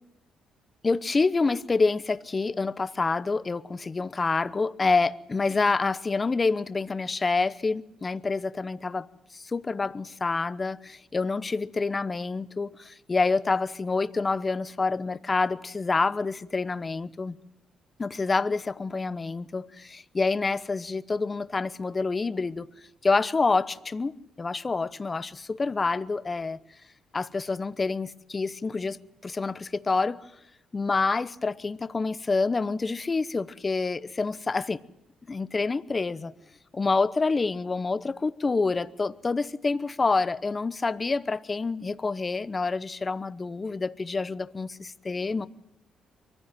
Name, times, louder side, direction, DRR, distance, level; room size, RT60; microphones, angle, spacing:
voice 1, 0.8-9.1 9.3-17.3 18.0-22.7 23.0-26.6 27.1-30.2 30.7-34.8 35.3-36.3 36.7-45.5, left 4 dB, 30° left, 0.9 m, -27 dB
23.0 x 15.5 x 9.1 m
cardioid pair, 90°, 0 cm